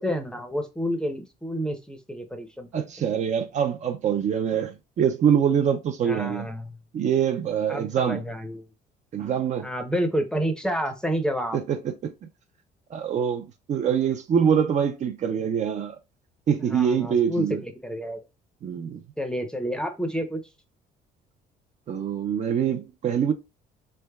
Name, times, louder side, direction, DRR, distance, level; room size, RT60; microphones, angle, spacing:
voice 1, 0.0-2.7 3.0-3.1 6.0-6.7 7.7-8.6 9.6-11.6 16.7-18.2 19.2-20.4, equal, 5° left, 0.6 m, -29 dB
voice 2, 2.7-6.5 6.9-8.2 9.1-9.7 11.5-12.1 12.9-16.0 16.5-17.6 18.6-19.0 21.9-23.3, right 8 dB, 45° right, 0.5 m, -24 dB
4.2 x 3.3 x 2.2 m
cardioid pair, 110°, 17 cm